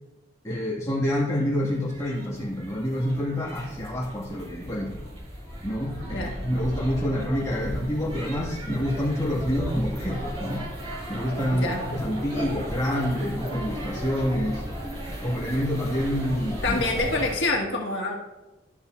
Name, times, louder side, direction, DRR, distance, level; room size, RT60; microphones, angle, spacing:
voice 1, 0.4-5.0 5.6-10.7 11.1-14.6 15.2-16.8, equal, 15° left, -5 dB, 2.0 m, -27 dB
sound 1, 1.1-17.4, equal, 30° right, 2.7 m, -35 dB
voice 2, 6.0-6.4 11.5-11.8 16.6-18.2, left 2 dB, 90° left, 0 dB, 1.7 m, -27 dB
13.5 x 5.6 x 2.6 m, 1.1 s
head